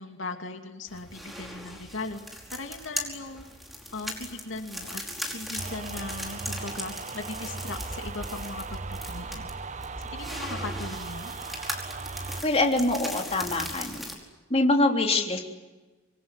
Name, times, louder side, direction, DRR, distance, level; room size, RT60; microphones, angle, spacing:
voice 1, 0.0-2.2 2.5-3.5 3.9-5.0 5.3-9.7 10.0-11.3, left 3 dB, 80° left, 5 dB, 2.7 m, -38 dB
sound 1, 0.9-14.2, equal, ahead, 4.9 m, -39 dB
sound 2, 5.6-12.4, right 4 dB, 40° right, 0.9 m, -38 dB
voice 2, 12.4-14.1 14.5-15.4, left 2 dB, 30° left, 2 dB, 3.5 m, -24 dB
26.5 x 22.5 x 9.8 m, 1.2 s
head